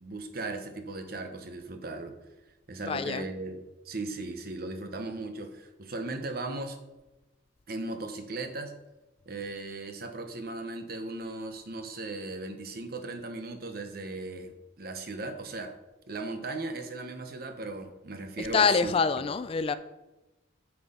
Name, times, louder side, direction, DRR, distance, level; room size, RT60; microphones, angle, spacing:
voice 1, 0.0-2.2 2.7-3.6 3.8-6.8 7.7-8.8 9.3-15.7 16.1-18.9, right 2 dB, 55° right, 0.9 m, -37 dB
voice 2, 2.8-3.3 18.4-19.8, left 5 dB, 30° left, 0.3 m, -26 dB
8.6 x 4.6 x 5.5 m
head